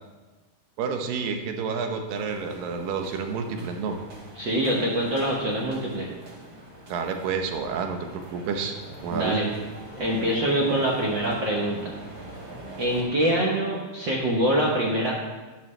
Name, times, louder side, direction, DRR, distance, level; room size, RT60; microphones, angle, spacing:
voice 1, 0.8-4.0 6.9-9.4, right 5 dB, 85° right, 4 dB, 2.7 m, -29 dB
sound 1, 2.1-13.0, right 1 dB, 40° right, 2.6 m, -44 dB
voice 2, 4.4-6.1 9.1-9.5 10.0-12.0 12.8-15.1, right 1 dB, 65° right, -3 dB, 1.1 m, -24 dB
11.0 x 11.0 x 3.3 m, 1.2 s
omnidirectional pair, 3.9 m